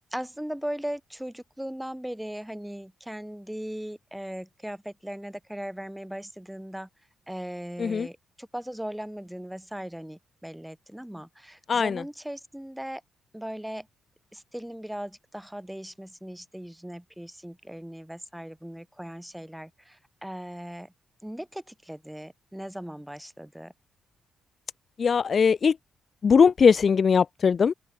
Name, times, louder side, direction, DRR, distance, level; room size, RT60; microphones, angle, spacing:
voice 1, 0.1-6.9 7.3-13.0 13.3-13.9 14.3-20.9 21.2-23.7, equal, 5° right, 7.6 m, -38 dB
voice 2, 11.7-12.0 25.0-25.7 26.2-27.7, left 6 dB, 50° left, 0.5 m, -20 dB
open air
cardioid pair, 70°, 0 cm